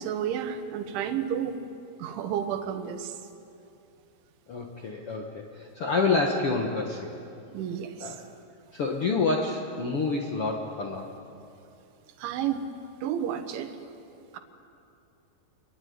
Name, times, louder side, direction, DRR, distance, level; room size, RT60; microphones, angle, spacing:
voice 1, 0.0-1.6 2.0-3.2 7.5-8.2 12.2-12.6 13.0-13.7 14.3-14.4, right 9 dB, 90° right, 7 dB, 3.8 m, -31 dB
voice 2, 4.5-7.1 8.0-8.2 8.7-11.1, left 3 dB, 75° left, 1 dB, 1.3 m, -28 dB
26.5 x 23.0 x 9.6 m, 2.6 s
omnidirectional pair, 5.3 m